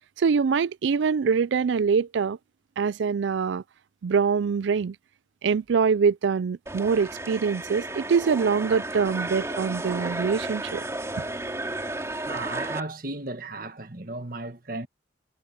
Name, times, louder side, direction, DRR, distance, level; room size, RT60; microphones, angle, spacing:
voice 1, 0.2-2.4 2.8-3.6 4.0-5.0 5.4-10.8, right 5 dB, 70° right, 0.4 m, -24 dB
sound 1, 6.7-12.8, right 2 dB, 15° right, 3.3 m, -33 dB
voice 2, 12.3-14.9, right 2 dB, 45° right, 1.6 m, -35 dB
head